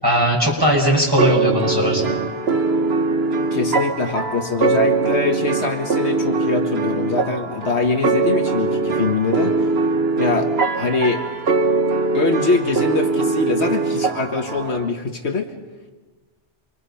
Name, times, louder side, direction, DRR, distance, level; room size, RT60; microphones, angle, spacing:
voice 1, 0.0-2.2, equal, 20° right, -2 dB, 6.1 m, -18 dB
sound 1, 1.2-14.9, right 3 dB, 60° right, 1.5 m, -21 dB
voice 2, 3.5-9.7 10.2-10.5 10.8-11.2 12.1-15.5, left 3 dB, 65° left, 4 dB, 1.7 m, -23 dB
28.0 x 24.0 x 5.7 m, 1.3 s
omnidirectional pair, 1.2 m